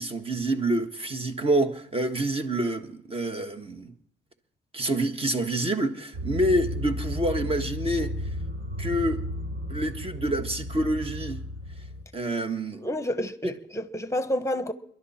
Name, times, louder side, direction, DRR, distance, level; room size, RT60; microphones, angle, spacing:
voice 1, 0.0-3.9 4.7-8.1 8.8-9.2 9.7-11.4 12.1-12.8, right 1 dB, 30° right, 1.5 m, -27 dB
sound 1, 6.1-12.0, equal, 65° right, 3.3 m, -33 dB
voice 2, 12.7-14.7, equal, 15° left, 1.3 m, -29 dB
29.0 x 11.5 x 4.3 m
cardioid pair, 90°, 20 cm